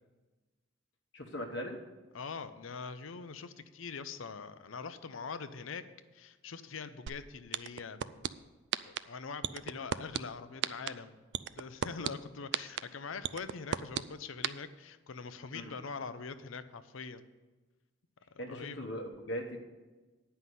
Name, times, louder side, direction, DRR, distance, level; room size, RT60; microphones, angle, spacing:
voice 1, 1.1-1.8 15.5-15.7 18.4-19.6, equal, 60° left, 1 dB, 1.0 m, -39 dB
voice 2, 2.1-5.8 6.1-8.3 8.9-11.3 11.6-17.3 18.3-18.9, left 5 dB, 85° left, 11 dB, 0.6 m, -43 dB
sound 1, 7.1-7.2 7.5-8.3 8.7-9.0 9.4-10.2 10.6-10.9 11.3-12.1 12.5-12.8 13.2-14.0 14.4-14.5, right 9 dB, 60° right, 0.3 m, -31 dB
9.3 x 5.7 x 8.2 m, 1.2 s
head